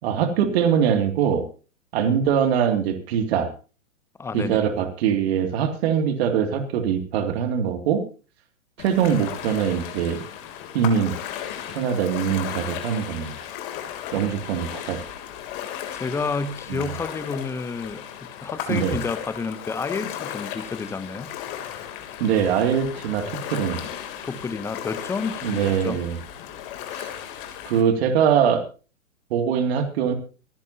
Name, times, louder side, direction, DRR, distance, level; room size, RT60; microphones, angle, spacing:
voice 1, 0.0-1.4 1.9-3.5 4.3-8.0 8.8-10.2 10.7-11.1 11.7-13.5 14.1-15.0 16.7-16.9 18.7-19.0 22.2-23.9 25.4-26.2 26.9-27.1 27.7-28.6 29.3-30.1, right 8 dB, 45° right, 7 dB, 2.5 m, -22 dB
voice 2, 4.2-4.6 15.9-18.0 18.4-21.3 24.2-26.0, left 4 dB, 5° left, 15 dB, 0.7 m, -30 dB
Ocean, 8.8-27.8, left 10 dB, 40° left, 3.0 m, -35 dB
25.5 x 11.0 x 2.8 m, 0.35 s
hypercardioid pair, 120°, 42 cm